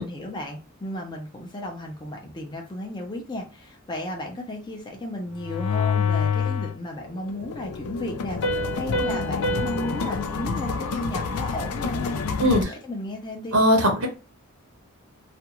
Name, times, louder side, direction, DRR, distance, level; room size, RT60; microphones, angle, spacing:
voice 1, 0.0-12.2 12.5-13.6, left 1 dB, 20° left, 0.6 m, -34 dB
sound 1, 5.4-6.8 7.2-12.6, left 6 dB, 80° left, 0.4 m, -28 dB
Piano, 8.4-11.8, right 1 dB, 60° left, 0.8 m, -31 dB
voice 2, 12.4-12.7 13.5-14.1, equal, 75° right, 0.9 m, -19 dB
2.5 x 2.3 x 2.9 m
head